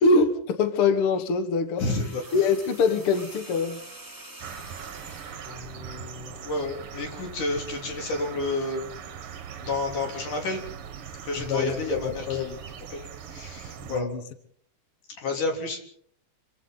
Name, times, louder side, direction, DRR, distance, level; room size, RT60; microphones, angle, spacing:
voice 1, 0.0-1.8 2.3-3.8 11.4-12.5 13.9-14.2, left 4 dB, 50° left, 8 dB, 2.1 m, -24 dB
voice 2, 1.8-2.2 5.4-8.9 9.6-10.6 11.2-12.6 12.9-13.0 13.3-14.1 15.2-15.8, left 2 dB, 70° left, 2 dB, 5.0 m, -30 dB
sound 1, 1.8-5.6 6.8-7.0, right 2 dB, 5° right, 3.1 m, -45 dB
sound 2, 4.4-14.0, right 7 dB, 50° right, 2.0 m, -41 dB
27.5 x 23.5 x 4.1 m, 0.62 s
omnidirectional pair, 3.7 m